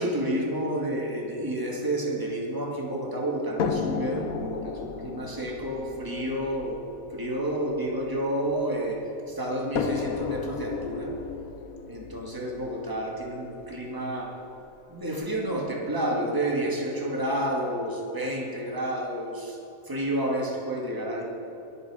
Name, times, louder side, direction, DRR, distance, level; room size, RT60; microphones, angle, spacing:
voice 1, 0.0-6.8 7.1-9.0 9.3-11.1 11.9-14.3 14.9-19.6 19.9-21.2, right 1 dB, 15° right, -2 dB, 2.1 m, -30 dB
sound 1, 3.6-8.8 9.7-13.7 14.7-14.8 15.2-15.3, left 6 dB, 90° left, 1.3 m, -34 dB
22.0 x 9.0 x 5.0 m, 2.9 s
omnidirectional pair, 1.4 m